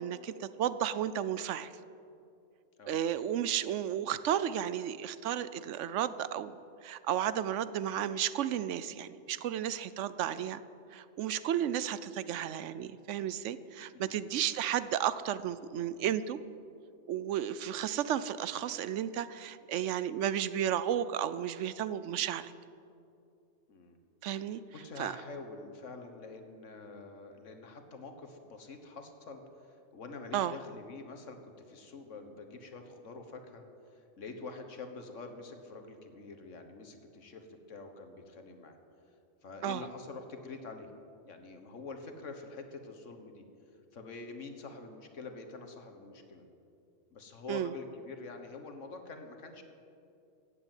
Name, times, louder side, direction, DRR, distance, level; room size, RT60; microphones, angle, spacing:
voice 1, 0.0-1.7 2.9-10.6 10.9-16.4 17.1-22.5 24.2-24.6 25.0-25.1 30.3-30.5 39.6-39.8 47.5-47.7, right 10 dB, 80° right, 15 dB, 0.9 m, -33 dB
voice 2, 13.9-14.3 23.7-24.0 24.7-33.6 33.9-38.8 39.4-40.9 41.2-43.4 43.9-46.4 47.1-49.6, left 3 dB, 85° left, 6 dB, 1.7 m, -46 dB
15.5 x 8.3 x 9.2 m, 2.6 s
omnidirectional pair, 1.2 m